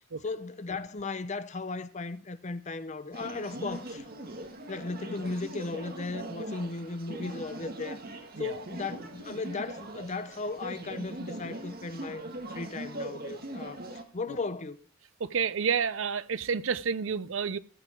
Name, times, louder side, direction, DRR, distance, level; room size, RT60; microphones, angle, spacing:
voice 1, 0.2-4.0 4.7-8.0 8.4-13.8 14.1-14.8, left 3 dB, 35° left, 0.7 m, -36 dB
sound 1, 3.1-14.0, right 1 dB, 50° right, 1.7 m, -41 dB
voice 2, 15.2-17.6, right 6 dB, 70° right, 0.6 m, -29 dB
16.0 x 8.0 x 4.5 m
head